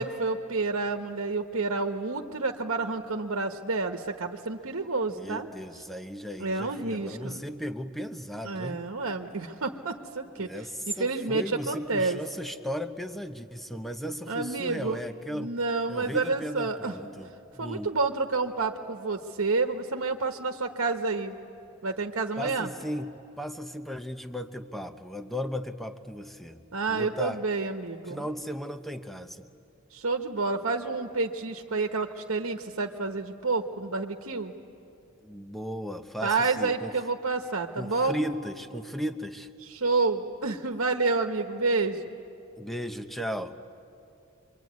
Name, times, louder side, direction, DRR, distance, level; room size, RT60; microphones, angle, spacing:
voice 1, 0.0-5.5 6.4-7.4 8.4-10.5 10.9-12.2 14.3-15.0 15.3-16.9 17.6-21.4 21.8-22.7 26.7-28.2 29.9-34.5 36.2-38.2 39.6-42.2, right 3 dB, 80° right, 5 dB, 1.3 m, -29 dB
voice 2, 5.1-8.8 10.3-15.5 15.9-18.0 22.4-26.6 26.9-27.4 28.1-29.5 35.2-36.9 37.8-39.5 42.6-43.6, equal, ahead, 7 dB, 0.9 m, -36 dB
26.0 x 24.0 x 9.5 m, 2.7 s
head